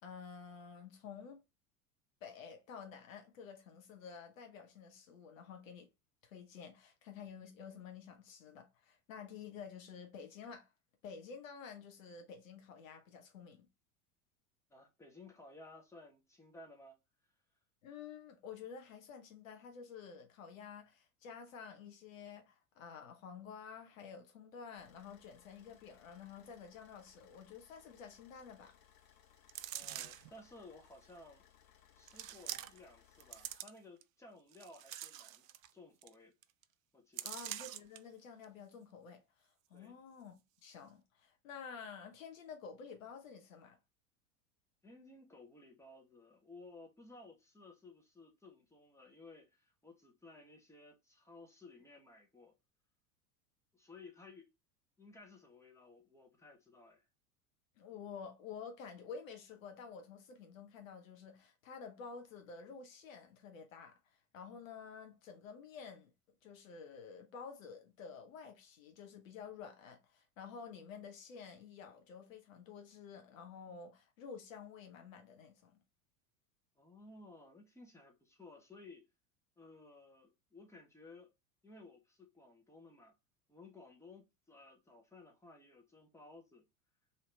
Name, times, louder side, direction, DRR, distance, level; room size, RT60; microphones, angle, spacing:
voice 1, 0.0-1.4 2.2-5.9 6.2-10.7 11.0-13.7 17.8-28.7 37.2-43.8 57.8-66.1 66.4-75.8, left 6 dB, 60° left, 1.0 m, -51 dB
voice 2, 14.7-17.0 29.7-31.5 31.9-35.5 35.7-36.3 36.9-37.3 39.7-39.9 44.8-52.5 53.7-54.5 55.0-57.1 76.8-79.1 79.6-81.3 81.6-83.1 83.5-86.6, left 2 dB, 5° left, 1.2 m, -57 dB
Car / Idling, 24.8-33.6, left 9 dB, 45° left, 1.3 m, -66 dB
sound 1, 29.5-30.3 31.1-31.2 32.1-32.9 33.2-34.0 34.5-35.7 36.0-36.1 36.4-36.6 37.2-38.0 38.4-38.5, right 12 dB, 60° right, 0.5 m, -45 dB
3.2 x 2.8 x 3.9 m
figure-of-eight pair, 80°, 46 cm